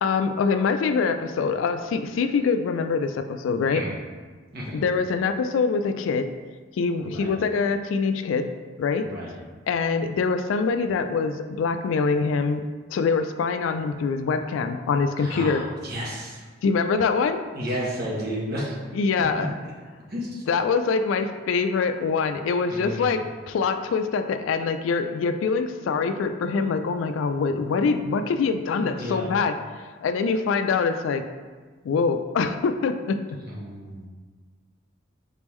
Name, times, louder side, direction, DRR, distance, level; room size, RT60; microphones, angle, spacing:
voice 1, 0.0-3.9 4.7-6.3 6.8-8.5 8.8-9.1 9.7-12.6 12.9-15.6 16.6-17.4 18.9-19.5 20.5-29.6 30.0-31.2 31.8-33.2, left 5 dB, 80° left, 9 dB, 0.3 m, -24 dB
voice 2, 15.2-16.4 17.5-18.8 20.1-20.4 22.7-23.2 28.7-29.3 33.5-34.1, equal, 55° right, -4 dB, 1.1 m, -32 dB
4.1 x 3.5 x 3.1 m, 1.4 s
head